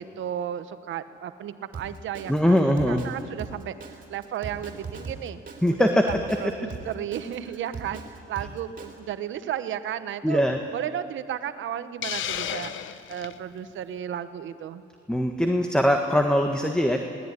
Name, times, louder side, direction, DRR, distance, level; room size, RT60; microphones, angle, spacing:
voice 1, 0.0-3.7 4.1-5.4 5.7-10.4 10.7-14.8, right 10 dB, 75° right, 12 dB, 1.1 m, -34 dB
Drum kit, 1.7-9.0, right 4 dB, 45° right, 4.0 m, -39 dB
voice 2, 2.3-3.1 5.6-6.0 10.2-10.6 15.1-17.0, equal, 5° left, 4 dB, 1.5 m, -21 dB
Hiss, 12.0-13.4, left 10 dB, 75° left, 1.1 m, -32 dB
22.5 x 18.5 x 9.8 m, 2.4 s
cardioid pair, 90°, 20 cm